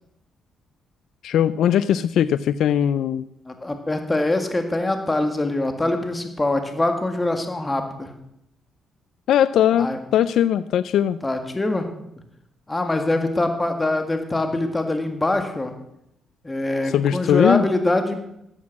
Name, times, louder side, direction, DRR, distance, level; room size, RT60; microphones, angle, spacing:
voice 1, 1.2-3.2 9.3-11.2 16.9-17.7, left 10 dB, 75° left, 15 dB, 0.4 m, -20 dB
voice 2, 3.5-8.1 9.8-10.0 11.2-11.9 12.7-15.7 16.4-18.3, left 2 dB, 20° left, 6 dB, 1.9 m, -23 dB
13.5 x 8.4 x 6.0 m, 0.79 s
cardioid pair, 90°, 0 cm